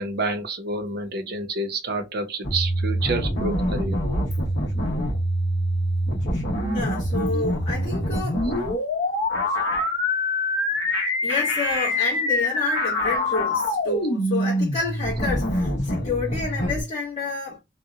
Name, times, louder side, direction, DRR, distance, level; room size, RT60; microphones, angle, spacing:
voice 1, 0.0-4.0, right 2 dB, 50° right, 0.5 m, -28 dB
sound 1, 2.4-16.8, left 1 dB, 60° left, 1.0 m, -25 dB
voice 2, 6.7-8.4 11.2-17.6, left 4 dB, 30° left, 0.9 m, -29 dB
2.7 x 2.0 x 2.3 m
head